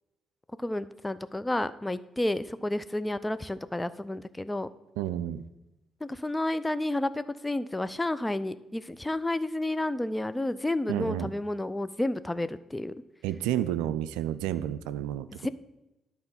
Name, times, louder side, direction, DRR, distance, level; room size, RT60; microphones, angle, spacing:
voice 1, 0.6-4.7 6.0-12.9 15.4-15.5, left 1 dB, 15° left, 14 dB, 0.5 m, -31 dB
voice 2, 5.0-5.4 10.9-11.3 13.2-15.3, right 11 dB, 80° right, 13 dB, 0.3 m, -30 dB
11.0 x 4.3 x 5.6 m, 0.96 s
hypercardioid pair, 45°, 0 cm